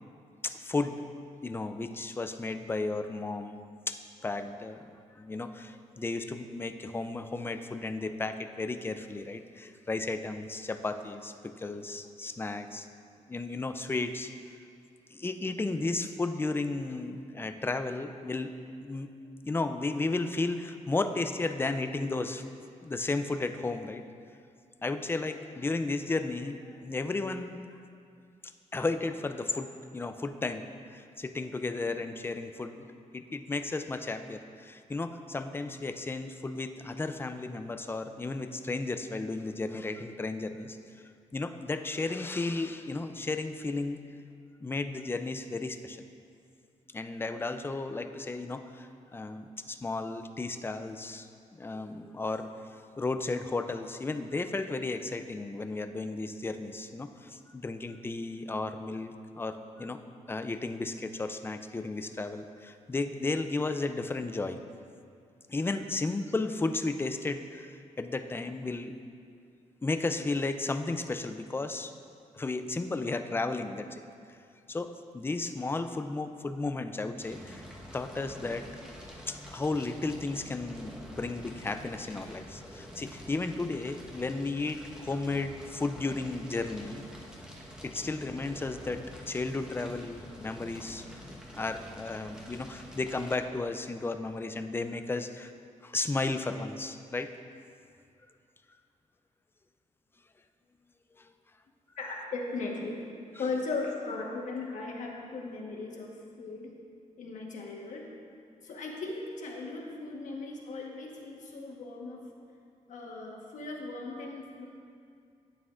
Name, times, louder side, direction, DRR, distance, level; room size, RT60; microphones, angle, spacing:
voice 1, 0.4-1.0 1.4-3.6 3.9-4.9 5.2-12.9 13.3-14.3 15.1-18.5 18.8-19.1 19.4-22.4 22.8-24.0 24.8-27.6 28.7-30.7 30.9-32.8 33.1-40.8 41.3-44.0 44.6-46.0 46.9-51.3 51.6-52.5 53.0-60.0 60.3-64.6 65.5-68.9 69.8-71.9 72.3-74.0 74.7-77.7 77.9-78.7 79.3-87.0 87.8-91.1 91.6-95.5 95.8-97.3 101.2-101.3, left 3 dB, 15° left, 8 dB, 0.4 m, -34 dB
Fire, 77.2-93.4, equal, 5° right, 1.2 m, -47 dB
voice 2, 102.0-103.0 103.4-106.8 107.2-108.2 108.6-112.3 112.9-114.6, left 3 dB, 70° left, -1 dB, 1.2 m, -37 dB
11.0 x 8.5 x 2.5 m, 2.3 s
cardioid pair, 105°, 13 cm